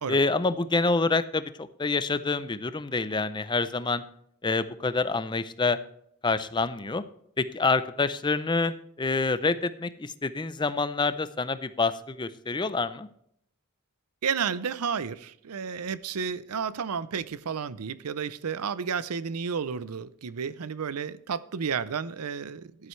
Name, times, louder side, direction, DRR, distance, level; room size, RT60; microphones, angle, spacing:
voice 1, 0.1-4.0 4.4-5.8 6.2-7.0 7.4-8.7 9.0-13.1, left 3 dB, 20° left, 0.5 m, -27 dB
voice 2, 14.2-22.9, right 6 dB, 85° right, 0.6 m, -32 dB
14.0 x 11.0 x 3.2 m
head